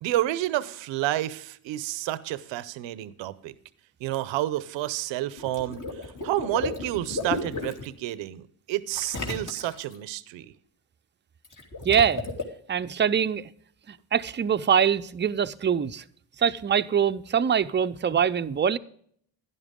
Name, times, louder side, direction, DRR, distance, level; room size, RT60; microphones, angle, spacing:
voice 1, 0.0-3.5 4.0-10.5, right 14 dB, 90° right, 0.7 m, -30 dB
Water / Liquid, 5.4-7.9 8.9-10.0 11.4-12.4, left 3 dB, 45° left, 2.9 m, -33 dB
voice 2, 11.8-12.2 12.7-13.5 13.9-16.0 16.4-18.8, right 8 dB, 25° right, 0.5 m, -24 dB
11.0 x 11.0 x 3.7 m
supercardioid pair, 65°, 43 cm